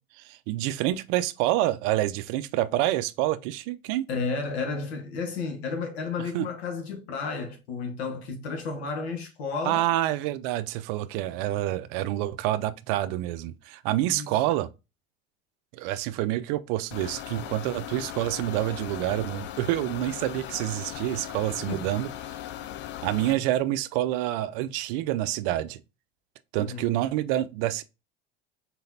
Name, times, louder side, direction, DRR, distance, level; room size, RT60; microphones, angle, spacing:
voice 1, 0.2-4.1 6.3-6.5 9.6-14.7 15.7-22.1 23.0-25.8 26.5-27.8, right 14 dB, 60° right, 0.5 m, -27 dB
voice 2, 4.1-9.9 14.0-14.3 21.7-21.9 26.6-26.9, left 4 dB, 80° left, 1.4 m, -32 dB
sound 1, 16.9-23.3, left 12 dB, 40° left, 0.4 m, -38 dB
4.1 x 3.9 x 2.7 m
hypercardioid pair, 85°, 31 cm